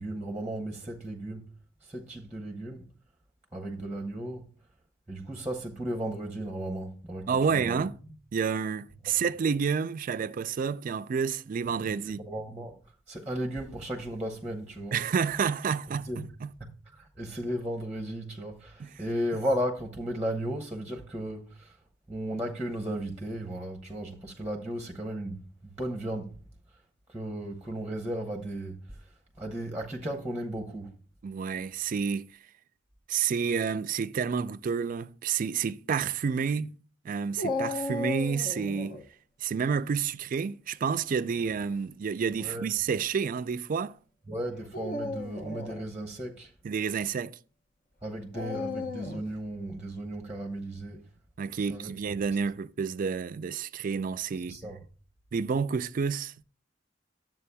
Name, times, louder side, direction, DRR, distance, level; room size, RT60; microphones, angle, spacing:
voice 1, 0.0-1.5 1.8-2.9 3.5-4.5 5.1-7.8 9.1-9.2 11.6-12.8 13.1-15.0 15.9-16.3 16.6-21.8 22.1-26.4 27.1-29.1 29.4-31.0 42.3-42.7 44.3-46.5 48.0-51.1 51.6-51.9 54.5-54.8, right 1 dB, 5° right, 0.8 m, -35 dB
voice 2, 7.3-7.9 8.3-12.2 14.9-16.5 18.8-18.9 31.2-32.3 33.1-36.7 37.0-39.0 39.4-44.0 46.6-47.4 51.4-54.6 55.3-56.4, right 6 dB, 45° right, 0.3 m, -29 dB
Dog, 37.4-39.0 41.1-41.6 42.4-42.5 44.6-45.9 48.3-49.3, left 3 dB, 45° left, 0.7 m, -35 dB
11.0 x 7.5 x 2.2 m
head